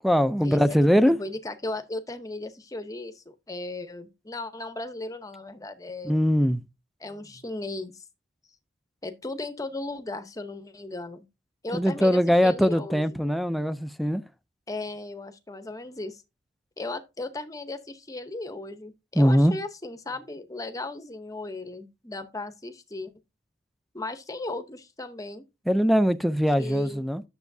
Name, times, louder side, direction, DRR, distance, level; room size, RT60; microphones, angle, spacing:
voice 1, 0.0-1.2 6.0-6.6 11.7-14.2 19.2-19.6 25.7-27.2, equal, ahead, 0.4 m, -21 dB
voice 2, 1.1-6.2 7.0-8.0 9.0-11.2 11.6-13.0 14.7-16.2 16.8-23.1 23.9-25.4 26.6-27.0, left 2 dB, 20° left, 0.8 m, -36 dB
9.4 x 7.0 x 2.7 m
head